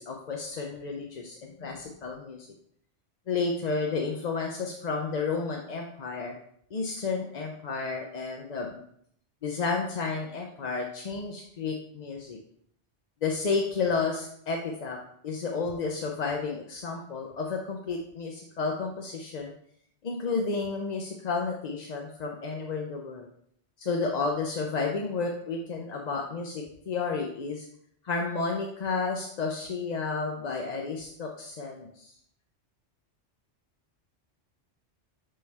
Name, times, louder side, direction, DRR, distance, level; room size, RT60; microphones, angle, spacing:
voice 1, 0.0-2.5 3.3-6.3 6.7-8.8 9.4-12.4 13.2-19.5 20.0-23.3 23.8-27.6 28.0-32.1, left 4 dB, 45° left, 1 dB, 0.6 m, -31 dB
6.5 x 5.4 x 3.4 m, 0.67 s
omnidirectional pair, 1.2 m